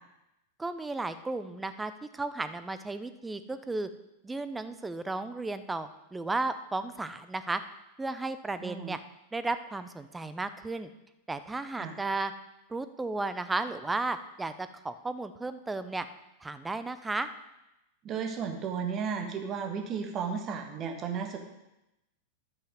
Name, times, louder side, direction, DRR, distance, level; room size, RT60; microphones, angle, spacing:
voice 1, 0.6-3.9 4.2-7.6 8.0-9.0 9.3-10.9 11.3-12.3 12.7-16.1 16.4-17.3, right 3 dB, 10° right, 12 dB, 0.6 m, -34 dB
voice 2, 8.6-8.9 11.8-12.0 18.0-21.4, right 6 dB, 30° right, 3 dB, 1.4 m, -34 dB
11.5 x 5.7 x 5.2 m, 0.93 s
figure-of-eight pair, 90°, 0 cm